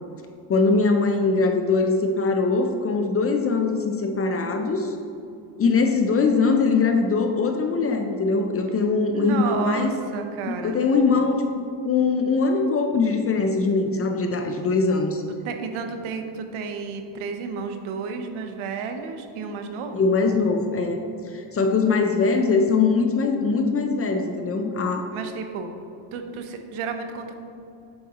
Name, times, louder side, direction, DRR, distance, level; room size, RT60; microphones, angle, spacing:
voice 1, 0.5-5.0 5.6-9.9 10.5-15.2 19.9-21.0 21.3-25.1, left 4 dB, 30° left, 5 dB, 0.4 m, -22 dB
voice 2, 9.1-10.8 15.4-20.1 25.1-25.7 26.1-27.3, right 5 dB, 75° right, 6 dB, 0.8 m, -32 dB
7.6 x 4.7 x 2.9 m, 2.6 s
cardioid pair, 110°, 50 cm